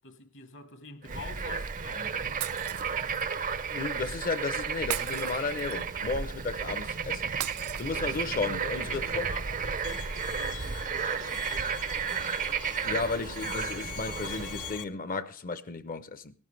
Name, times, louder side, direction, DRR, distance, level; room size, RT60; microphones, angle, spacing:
voice 1, 0.0-2.4 8.8-11.8, left 4 dB, 60° left, 1.2 m, -47 dB
Bird / Frog, 1.0-14.8, right 6 dB, 35° right, 0.5 m, -33 dB
Shatter, 2.4-3.3 4.9-6.0 7.4-8.4, right 13 dB, 85° right, 0.5 m, -37 dB
voice 2, 3.7-9.2 12.8-16.3, left 4 dB, 40° left, 0.6 m, -34 dB
Bowed string instrument, 9.8-14.8, left 10 dB, 80° left, 0.6 m, -42 dB
17.5 x 12.5 x 3.2 m
head